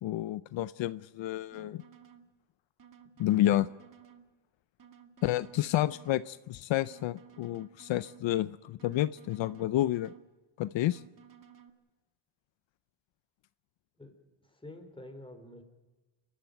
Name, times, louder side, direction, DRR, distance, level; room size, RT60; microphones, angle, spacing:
voice 1, 0.0-1.8 3.2-3.7 5.2-10.1 10.6-11.0, left 14 dB, 70° left, 16 dB, 0.6 m, -30 dB
sound 1, 1.5-2.3 2.8-4.3 4.8-6.3 6.8-8.3 8.8-10.3 10.8-11.7, right 8 dB, 40° right, 2.1 m, -56 dB
voice 2, 14.4-15.6, left 1 dB, 10° left, 5 dB, 3.9 m, -48 dB
29.0 x 12.5 x 9.1 m, 1.2 s
cardioid pair, 110°, 47 cm